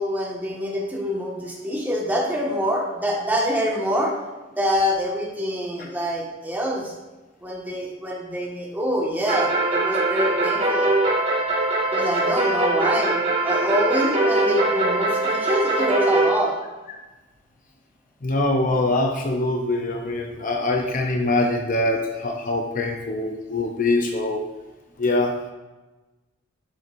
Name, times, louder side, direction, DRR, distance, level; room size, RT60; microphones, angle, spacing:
voice 1, 0.0-4.2 4.6-6.9 7.4-10.9 11.9-16.5, equal, 10° right, -4 dB, 1.7 m, -25 dB
sound 1, 9.3-16.3, right 2 dB, 35° right, 2.3 m, -22 dB
voice 2, 18.2-24.4 25.0-25.4, left 2 dB, 45° left, 3 dB, 0.7 m, -23 dB
10.5 x 7.4 x 2.7 m, 1.1 s
head